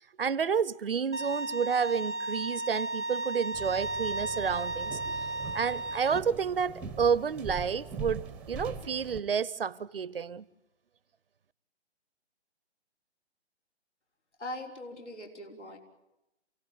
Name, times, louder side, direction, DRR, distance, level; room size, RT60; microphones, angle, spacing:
voice 1, 0.0-5.0 5.5-10.4, right 6 dB, 55° right, 0.8 m, -30 dB
Bowed string instrument, 1.1-6.2, right 2 dB, 90° right, 0.9 m, -34 dB
sound 1, 3.5-9.2, right 4 dB, 5° right, 0.9 m, -42 dB
voice 2, 14.4-15.8, left 1 dB, 80° left, 5.7 m, -41 dB
28.0 x 17.5 x 9.4 m
figure-of-eight pair, 140°, 34 cm